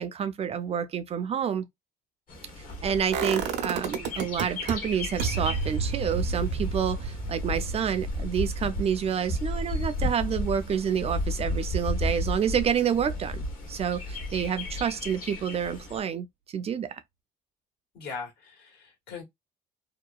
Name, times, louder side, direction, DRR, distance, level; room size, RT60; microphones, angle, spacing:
voice 1, 0.0-1.7 2.8-17.0, right 8 dB, 35° right, 0.4 m, -29 dB
Bird, 2.3-16.0, left 1 dB, 55° left, 1.0 m, -33 dB
sound 1, 3.1-4.7 5.2-11.0 11.4-11.5, right 5 dB, 85° right, 0.6 m, -32 dB
voice 2, 17.9-19.2, left 5 dB, 75° left, 1.5 m, -40 dB
2.8 x 2.3 x 2.3 m
cardioid pair, 110°, 17 cm